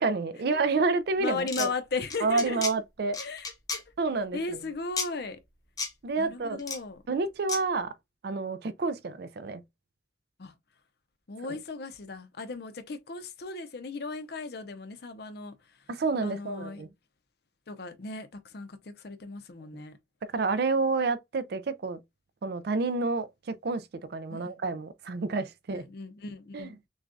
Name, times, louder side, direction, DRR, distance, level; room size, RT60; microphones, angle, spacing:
voice 1, 0.0-1.7 2.2-3.2 4.0-4.4 6.0-6.6 7.1-7.9 8.2-9.6 11.5-11.6 15.9-16.9 20.3-22.0 22.4-25.9 26.5-26.7, right 3 dB, 55° right, 0.4 m, -29 dB
voice 2, 1.2-2.7 3.2-3.8 4.3-5.4 6.2-7.0 10.4-10.5 11.3-15.9 16.2-16.8 17.7-20.0 24.3-24.6 25.7-26.8, left 3 dB, 55° left, 0.6 m, -37 dB
sound 1, 1.4-1.7 2.1-2.7 3.1-3.8 5.0-5.1 5.8-5.9 6.6-6.8 7.5-7.6, left 4 dB, 20° left, 0.7 m, -32 dB
6.2 x 2.3 x 2.6 m
head